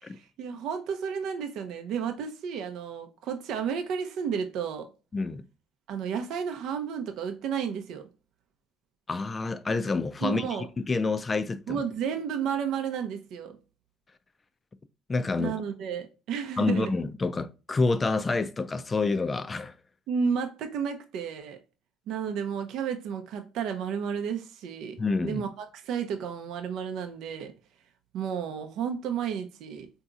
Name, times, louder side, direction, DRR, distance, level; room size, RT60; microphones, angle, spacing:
voice 1, 0.0-4.9 5.9-8.0 10.2-10.7 11.7-13.5 15.3-16.9 20.1-21.6 22.1-27.5 28.1-29.9, right 7 dB, 70° right, 0.5 m, -32 dB
voice 2, 5.1-5.4 9.1-10.5 10.8-11.8 15.1-15.5 16.6-19.7 25.0-25.4, left 3 dB, 25° left, 0.4 m, -28 dB
3.8 x 2.7 x 2.3 m
supercardioid pair, 85°, 0 cm